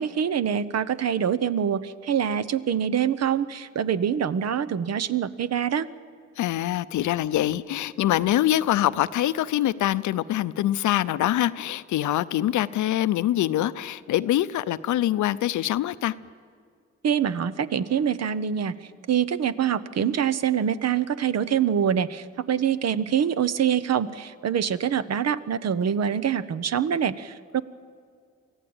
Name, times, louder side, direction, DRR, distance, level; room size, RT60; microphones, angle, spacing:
voice 1, 0.0-5.9 17.0-27.6, right 8 dB, 60° right, 14 dB, 0.9 m, -25 dB
voice 2, 6.4-16.1, left 13 dB, 85° left, 15 dB, 0.6 m, -24 dB
24.0 x 15.0 x 8.8 m, 2.2 s
cardioid pair, 85°, 29 cm